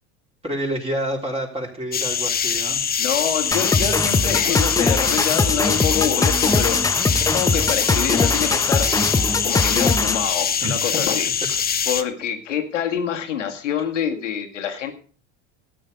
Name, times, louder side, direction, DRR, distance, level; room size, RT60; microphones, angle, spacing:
voice 1, 0.4-2.8 10.6-10.7, right 1 dB, 15° right, -1 dB, 3.3 m, -28 dB
sound 1, 1.9-12.0, left 7 dB, 25° left, 1.1 m, -23 dB
voice 2, 3.0-6.8 7.2-8.9 9.4-11.6 11.9-14.9, left 8 dB, 90° left, 6 dB, 2.0 m, -26 dB
sound 2, 3.5-10.3, left 3 dB, 10° left, 0.8 m, -22 dB
13.0 x 8.8 x 5.2 m, 0.40 s
hypercardioid pair, 85°, 36 cm